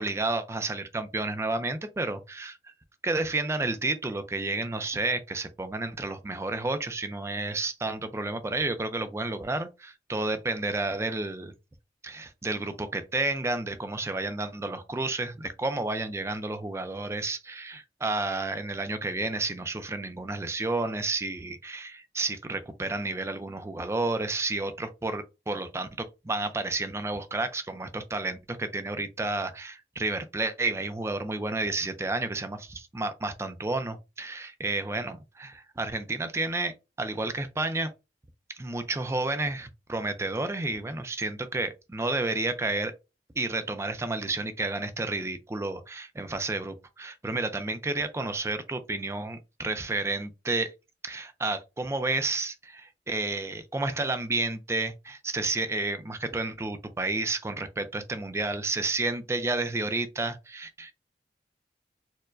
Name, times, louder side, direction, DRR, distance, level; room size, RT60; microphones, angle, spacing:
voice 1, 0.0-2.6 3.0-11.5 12.0-36.7 37.0-37.9 38.6-42.9 43.4-50.7 51.0-60.9, right 2 dB, 15° right, 0.3 m, -31 dB
4.4 x 2.1 x 2.4 m
head